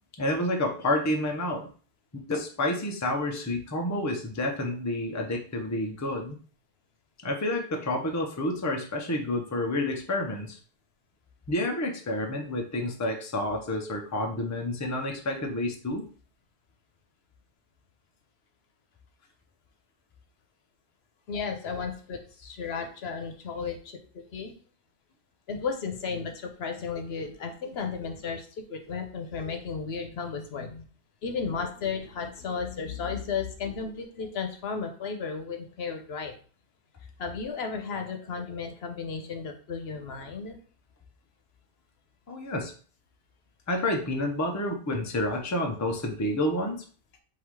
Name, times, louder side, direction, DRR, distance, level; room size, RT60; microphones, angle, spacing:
voice 1, 0.2-1.7 2.3-6.4 7.2-10.6 11.5-16.0 42.3-42.7 43.7-46.8, left 1 dB, 20° left, 2 dB, 0.6 m, -29 dB
voice 2, 21.3-24.5 25.5-30.9 31.2-36.3 37.2-40.6, left 5 dB, 80° left, 5 dB, 1.0 m, -34 dB
3.8 x 2.7 x 4.6 m, 0.41 s
omnidirectional pair, 1.1 m